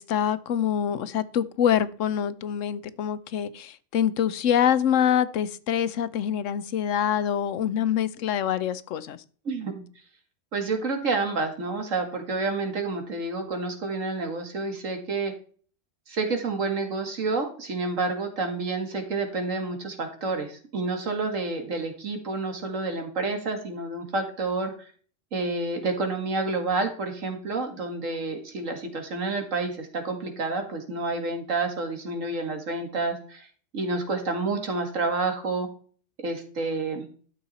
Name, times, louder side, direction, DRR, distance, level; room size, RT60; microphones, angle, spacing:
voice 1, 0.0-9.2, left 9 dB, 80° left, 1.1 m, -25 dB
voice 2, 9.5-9.8 10.5-15.3 16.1-24.9 25.3-33.5 33.7-35.7 36.2-37.1, right 3 dB, 85° right, 2.3 m, -29 dB
12.5 x 6.7 x 4.2 m
omnidirectional pair, 1.3 m